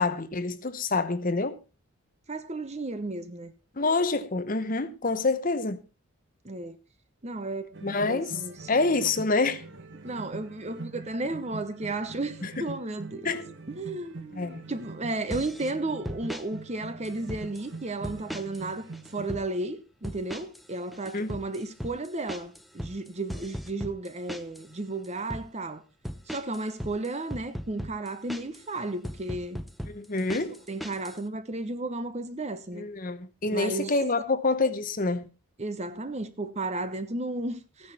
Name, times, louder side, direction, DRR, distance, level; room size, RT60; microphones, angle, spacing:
voice 1, 0.0-1.6 3.8-5.8 7.8-8.3 8.7-9.6 12.4-12.6 13.2-13.4 14.3-14.6 21.1-21.3 29.9-30.6 32.7-35.3, left 3 dB, 40° left, 0.9 m, -27 dB
voice 2, 2.3-3.5 6.4-6.8 7.2-8.7 10.0-13.3 13.7-18.9 19.1-25.8 26.3-29.6 30.7-32.9 33.5-33.9 35.6-37.9, right 2 dB, 30° right, 0.9 m, -34 dB
sound 1, 7.7-19.3, right 3 dB, 55° right, 1.3 m, -44 dB
sound 2, 15.3-15.7 16.0-16.4 17.0-17.7 18.0-18.7 18.9-19.5 20.0-20.7 20.9-24.7 25.0-25.5 26.0-28.6 29.0-31.2, equal, ahead, 0.7 m, -38 dB
14.5 x 9.9 x 4.2 m
head